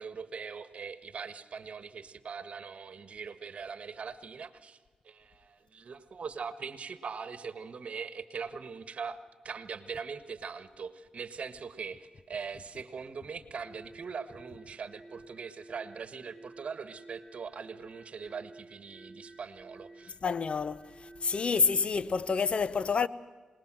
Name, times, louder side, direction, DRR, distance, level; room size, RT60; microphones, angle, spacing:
voice 1, 0.0-4.8 5.0-20.1, right 5 dB, 60° right, 1.5 m, -41 dB
sound 1, 13.6-21.9, right 2 dB, 10° left, 2.1 m, -53 dB
voice 2, 20.2-20.8 21.2-23.1, left 5 dB, 50° left, 0.8 m, -28 dB
26.5 x 20.0 x 7.6 m
cardioid pair, 65°, 2 cm